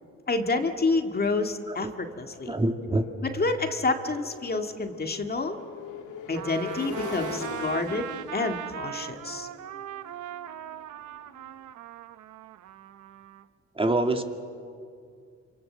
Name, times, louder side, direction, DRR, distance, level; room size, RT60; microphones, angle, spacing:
voice 1, 0.3-2.6 3.2-5.6 6.3-9.5, left 3 dB, 30° left, 5 dB, 2.1 m, -28 dB
Motorcycle, 1.6-11.4, left 6 dB, 80° left, 3.0 m, -42 dB
voice 2, 2.5-3.0 13.8-14.2, right 2 dB, 20° right, 5 dB, 2.2 m, -25 dB
Trumpet, 6.3-13.4, right 12 dB, 75° right, 1.1 m, -39 dB
27.5 x 26.5 x 7.8 m, 2.3 s
cardioid pair, 90°, 30 cm